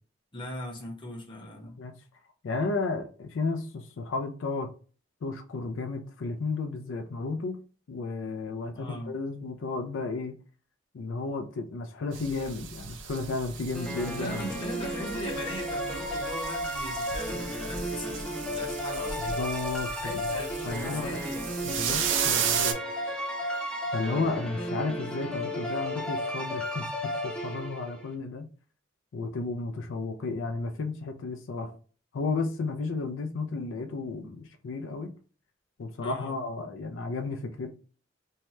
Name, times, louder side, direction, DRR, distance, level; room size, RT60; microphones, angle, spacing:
voice 1, 0.3-1.8 8.7-9.1 14.2-19.4 19.9-21.4 36.0-36.4, equal, 25° left, 0.8 m, -39 dB
voice 2, 2.4-4.7 5.2-7.6 7.9-10.4 10.9-14.6 19.2-21.2 21.6-22.7 23.9-28.5 29.1-31.7 32.1-35.1 35.8-37.7, left 3 dB, 85° left, 0.4 m, -33 dB
sound 1, 12.1-22.7, right 7 dB, 70° right, 0.4 m, -35 dB
sound 2, 13.7-28.1, equal, 5° left, 0.5 m, -34 dB
2.7 x 2.2 x 3.1 m
head